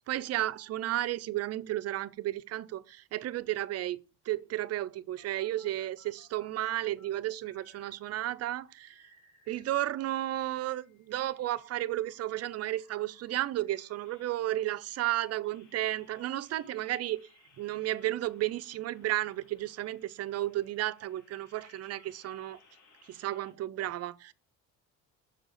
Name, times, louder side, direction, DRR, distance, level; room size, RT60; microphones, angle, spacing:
voice 1, 0.1-4.0 4.3-9.1 9.5-17.3 17.6-22.6 23.1-24.3, right 14 dB, 50° right, 0.5 m, -33 dB
sound 1, 4.4-7.1 7.4-10.0 10.3-23.5, left 3 dB, 65° left, 2.7 m, -64 dB
6.4 x 3.9 x 6.4 m
cardioid pair, 120°, 33 cm